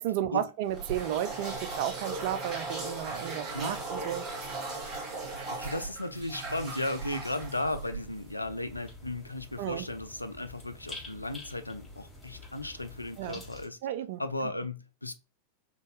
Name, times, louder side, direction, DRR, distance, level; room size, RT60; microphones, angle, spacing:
voice 1, 0.0-4.3 9.6-9.9 13.2-13.4 13.8-14.2, right 11 dB, 50° right, 0.3 m, -33 dB
sound 1, 0.7-8.3, right 3 dB, 35° right, 1.1 m, -38 dB
voice 2, 5.5-13.8 14.2-15.1, left 2 dB, 85° left, 0.3 m, -35 dB
sound 2, 6.1-13.7, left 2 dB, 10° left, 1.3 m, -49 dB
3.7 x 2.5 x 2.4 m
figure-of-eight pair, 90°, 0 cm